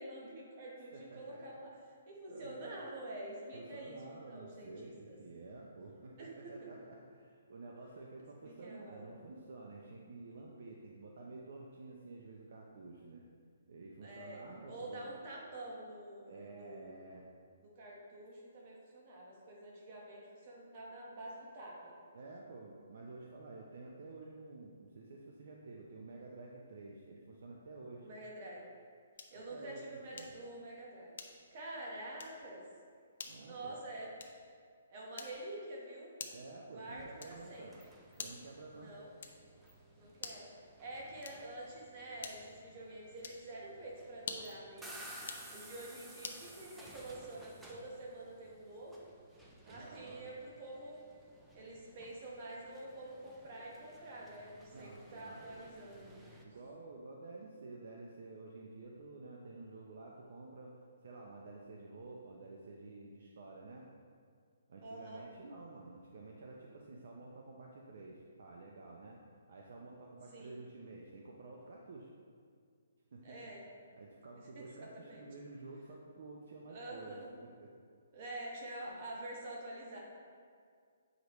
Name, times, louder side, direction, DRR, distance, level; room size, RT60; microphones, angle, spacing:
voice 1, 0.0-1.7 2.1-5.2 6.2-6.7 8.4-9.1 14.0-16.9 17.6-21.9 28.0-28.7 29.3-31.1 31.5-32.6 33.4-34.1 34.9-36.1 36.7-37.7 38.7-39.1 39.4-39.5 39.9-40.5 40.8-45.1 45.5-49.0 49.6-51.0 51.5-56.1 64.8-65.3 70.3-70.6 73.2-73.6 74.4-75.2 76.7-77.3 78.1-80.0, right 1 dB, 30° right, -3 dB, 1.3 m, -47 dB
voice 2, 0.9-1.4 2.3-2.8 3.5-13.2 13.7-15.1 16.3-17.3 22.1-28.1 29.3-30.3 33.2-33.8 36.3-37.8 38.2-38.9 40.0-40.1 49.5-50.3 54.7-55.5 56.4-60.7 61.0-63.8 64.7-69.2 69.5-72.1 73.1-73.5 73.9-77.7, right 3 dB, 55° right, -1 dB, 0.6 m, -51 dB
sound 1, 29.1-29.5 30.2-30.5 31.1-31.6 32.1-32.4 33.2-33.5 34.2-34.5 35.2-35.6 36.2-36.6 37.2-37.5 38.2-38.6 39.2-39.6 40.2-40.5 41.2-41.6 42.2-42.6 43.2-43.5 44.2-44.6 45.2-45.5 46.2-46.5, left 5 dB, 55° left, 0.6 m, -47 dB
sound 2, 36.9-56.4, right 1 dB, 5° right, 0.4 m, -56 dB
7.9 x 5.0 x 3.1 m, 2.1 s
hypercardioid pair, 170°, 0 cm